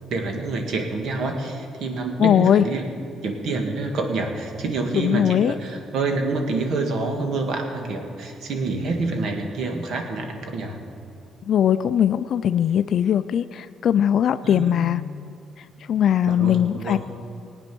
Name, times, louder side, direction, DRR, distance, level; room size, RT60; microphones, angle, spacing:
voice 1, 0.1-2.8 3.2-10.8 14.4-14.8 16.3-17.0, right 3 dB, 70° right, 3 dB, 2.0 m, -27 dB
voice 2, 2.2-2.6 5.0-5.5 11.5-15.0 15.9-17.0, left 9 dB, 60° left, 13 dB, 0.4 m, -20 dB
19.0 x 9.1 x 6.1 m, 2.4 s
cardioid pair, 120°, 0 cm